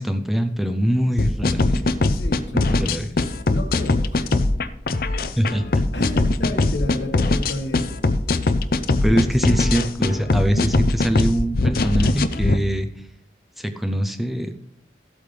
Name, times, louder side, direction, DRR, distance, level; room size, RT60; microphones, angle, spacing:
voice 1, 0.0-1.8 2.7-3.1 5.4-5.8 9.0-12.9 13.6-14.5, equal, ahead, 6 dB, 0.5 m, -23 dB
sound 1, 1.2-12.6, left 2 dB, 55° left, 0.6 m, -21 dB
voice 2, 2.1-2.9 3.5-4.3 5.9-7.9 9.1-9.4, left 2 dB, 85° left, 4 dB, 1.5 m, -31 dB
13.5 x 8.3 x 3.4 m, 0.75 s
head